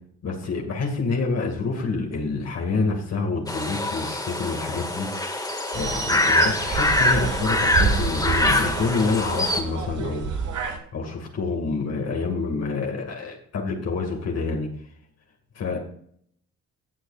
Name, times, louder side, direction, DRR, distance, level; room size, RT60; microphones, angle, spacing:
voice 1, 0.2-5.1 5.7-10.3 10.9-14.7 15.5-15.8, left 4 dB, 55° left, 1 dB, 2.3 m, -27 dB
sound 1, 3.5-9.6, left 1 dB, 10° left, 2.1 m, -24 dB
sound 2, 5.7-10.8, right 5 dB, 75° right, 2.5 m, -29 dB
17.5 x 6.4 x 2.5 m, 0.64 s
cardioid pair, 90°, 30 cm